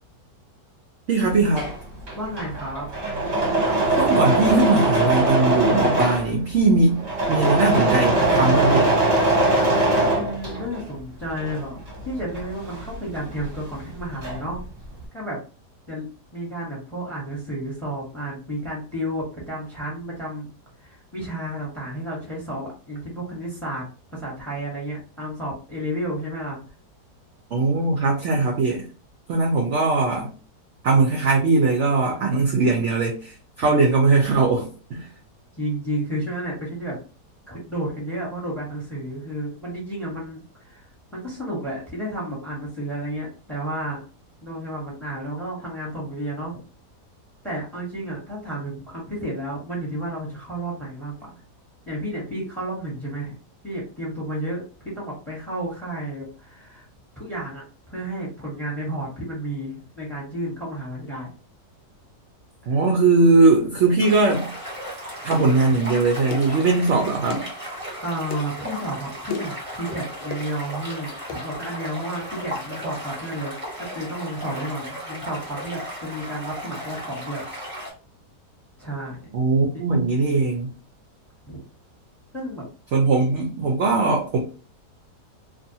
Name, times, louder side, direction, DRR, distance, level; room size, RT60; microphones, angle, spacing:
voice 1, 1.1-1.7 4.0-7.0 7.3-9.0 27.5-28.8 29.3-30.3 30.8-35.1 62.7-64.5 65.2-67.4 79.3-80.7 82.9-84.4, right 3 dB, 70° right, 0.7 m, -20 dB
Engine / Mechanisms, 1.3-10.9 11.2-13.6 13.9-14.6, right 2 dB, 50° right, 1.0 m, -21 dB
voice 2, 2.1-2.9 10.1-14.6 15.1-15.4 15.9-20.5 20.8-23.8 24.1-26.6 32.1-32.6 35.6-37.0 37.5-44.0 44.4-46.6 47.4-51.3 51.9-53.4 53.6-54.6 54.9-56.9 57.2-61.3 62.6-62.8 68.0-77.4 78.8-79.3 79.7-79.8 81.5-81.6 82.3-82.6, right 1 dB, ahead, 1.0 m, -32 dB
sound 1, 64.0-77.9, equal, 20° right, 1.0 m, -35 dB
sound 2, 64.3-64.5 65.3-65.6 66.3-66.6 67.3-67.5 68.3-68.5 69.3-69.6 70.3-70.5 71.3-71.4, left 4 dB, 80° left, 1.2 m, -33 dB
2.6 x 2.5 x 2.7 m
omnidirectional pair, 1.8 m